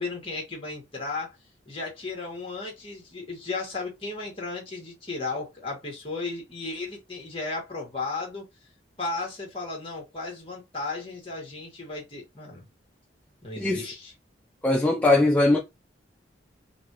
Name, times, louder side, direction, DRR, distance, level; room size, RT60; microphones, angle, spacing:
voice 1, 0.0-1.3 1.7-8.5 9.0-12.7 13.4-14.1, left 3 dB, 30° left, 1.7 m, -35 dB
voice 2, 13.6-13.9 14.6-15.6, left 2 dB, 10° left, 0.4 m, -20 dB
4.0 x 2.5 x 3.0 m
head